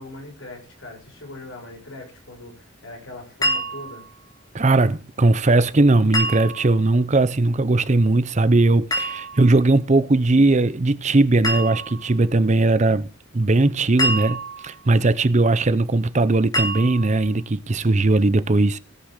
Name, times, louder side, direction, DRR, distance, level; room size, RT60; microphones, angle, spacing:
voice 1, 0.0-4.1, left 2 dB, 75° left, 6.2 m, -40 dB
sound 1, 3.4-4.1 6.1-6.9 8.9-9.6 11.4-12.1 14.0-14.9 16.5-17.3, equal, 20° left, 3.2 m, -26 dB
voice 2, 4.5-13.1 13.3-18.8, right 2 dB, 35° right, 0.7 m, -19 dB
17.0 x 6.3 x 6.5 m
head